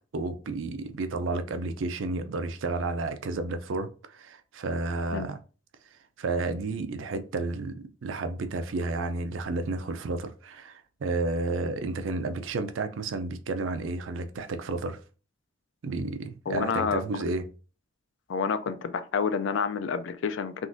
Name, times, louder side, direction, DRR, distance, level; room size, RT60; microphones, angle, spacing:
voice 1, 0.1-5.4 6.2-7.7 8.0-15.0 15.8-17.4, right 3 dB, 75° right, 0.5 m, -31 dB
voice 2, 16.5-17.3 18.3-20.7, left 6 dB, 65° left, 0.4 m, -29 dB
3.7 x 2.4 x 2.5 m
head